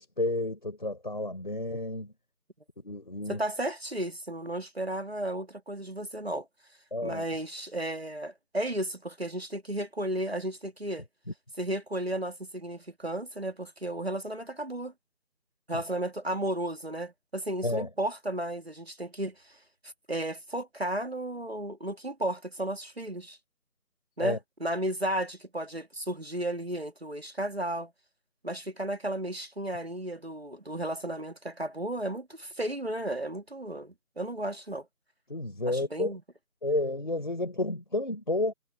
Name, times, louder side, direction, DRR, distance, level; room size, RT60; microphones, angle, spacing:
voice 1, 0.0-2.1 2.8-3.4 6.9-7.2 17.6-17.9 24.2-24.4 35.3-36.2 36.6-38.5, left 2 dB, 30° left, 4.0 m, -31 dB
voice 2, 3.3-6.5 7.0-11.0 11.6-14.9 15.7-19.5 20.1-23.4 24.2-27.9 28.4-34.9 35.7-36.2, right 1 dB, 40° right, 2.6 m, -34 dB
figure-of-eight pair, 175°, 47 cm